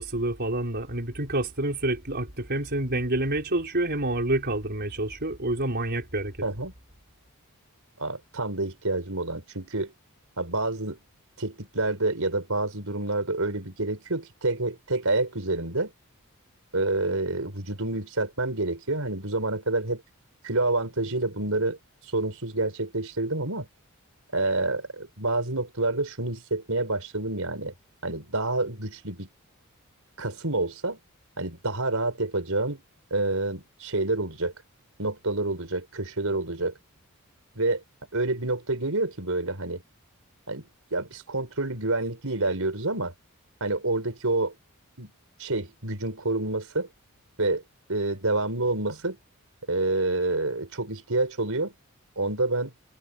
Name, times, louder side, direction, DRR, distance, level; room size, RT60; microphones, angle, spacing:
voice 1, 0.0-6.3, right 1 dB, 50° right, 4.9 m, -28 dB
voice 2, 6.4-6.7 8.0-9.9 10.4-11.0 11.4-15.9 16.7-20.0 20.4-21.8 22.1-23.7 24.3-27.7 28.0-29.3 30.2-31.0 31.4-32.8 33.1-34.5 35.0-36.7 37.5-37.8 38.1-39.8 40.5-40.6 40.9-43.1 43.6-44.5 45.0-45.1 45.4-46.9 47.4-47.6 47.9-49.2 49.7-51.7 52.2-52.7, right 2 dB, 65° right, 6.1 m, -28 dB
head